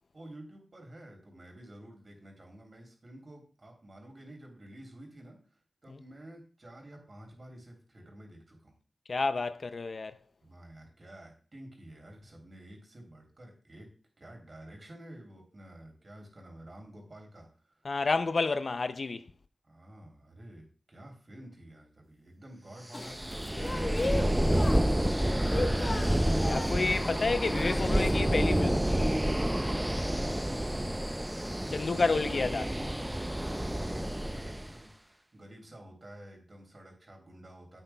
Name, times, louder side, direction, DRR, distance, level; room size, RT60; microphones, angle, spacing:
voice 1, 0.1-5.4 5.8-8.8 10.4-13.9 14.2-17.8 19.6-23.9 30.4-31.1 31.8-32.4 32.7-37.8, right 1 dB, 50° right, 3.1 m, -50 dB
voice 2, 9.1-10.2 17.8-19.3 25.7-29.0 31.7-32.7, left 3 dB, 65° left, 0.5 m, -30 dB
sound 1, 22.9-28.2, left 2 dB, 50° left, 1.1 m, -37 dB
sound 2, 23.0-34.7, right 1 dB, 10° right, 0.5 m, -29 dB
9.9 x 8.1 x 2.2 m
wide cardioid pair, 55°, 0 cm